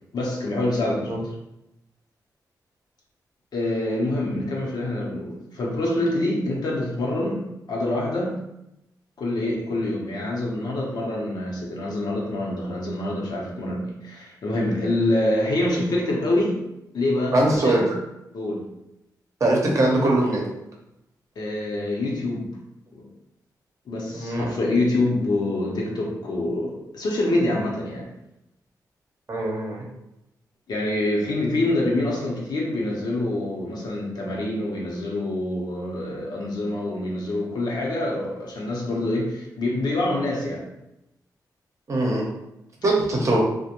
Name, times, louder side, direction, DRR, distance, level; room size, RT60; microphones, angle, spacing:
voice 1, 0.1-1.2 3.5-7.4 7.7-8.3 9.2-16.6 16.9-17.9 18.3-18.7 21.4-22.5 22.9-23.0 23.9-28.1 30.7-40.7, left 1 dB, 70° left, -2 dB, 0.7 m, -26 dB
voice 2, 17.3-17.8 19.4-20.4 24.1-24.5 29.3-29.9 41.9-42.3 42.8-43.4, right 1 dB, 45° right, -2 dB, 0.8 m, -21 dB
2.4 x 2.1 x 2.9 m, 0.87 s
cardioid pair, 75°, 7 cm